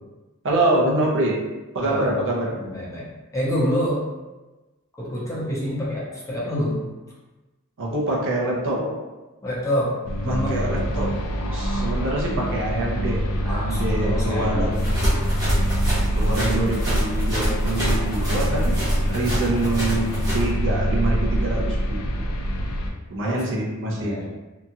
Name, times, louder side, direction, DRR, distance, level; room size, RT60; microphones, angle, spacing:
voice 1, 0.4-1.3 1.7-2.5 7.8-9.0 10.3-11.1 11.5-14.9 16.1-18.8 19.1-22.1 23.1-24.2, right 1 dB, 60° right, -3 dB, 0.6 m, -25 dB
voice 2, 2.6-3.1 3.3-4.0 5.0-6.8 9.4-9.9 10.2-10.7 13.5-14.7 23.2-23.4 23.9-24.3, equal, 15° left, -7 dB, 0.7 m, -27 dB
sound 1, 10.0-22.9, equal, 70° left, 0.4 m, -25 dB
sound 2, 14.8-20.5, equal, 15° right, 0.9 m, -28 dB
2.8 x 2.3 x 2.7 m, 1.1 s
head